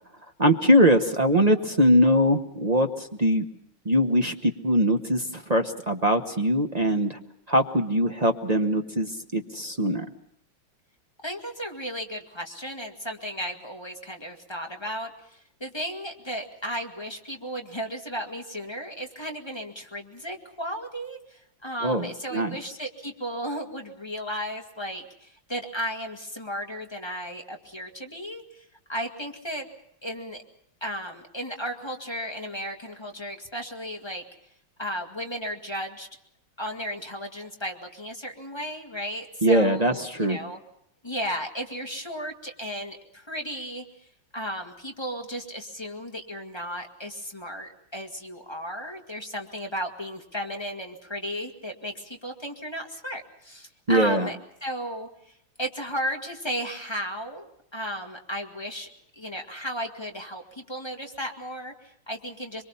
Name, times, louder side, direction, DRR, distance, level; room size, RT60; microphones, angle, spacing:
voice 1, 0.4-3.4 3.9-7.2 7.5-10.1 21.8-22.6 39.4-40.4 53.9-54.3, equal, 35° right, 5 dB, 0.7 m, -22 dB
voice 2, 11.2-29.7 30.0-30.4 30.8-34.2 34.8-36.1 36.6-40.6 41.0-43.8 44.3-57.5 57.7-58.9 59.1-62.6, equal, 15° left, 2 dB, 1.7 m, -34 dB
24.5 x 23.5 x 5.6 m, 0.72 s
omnidirectional pair, 2.3 m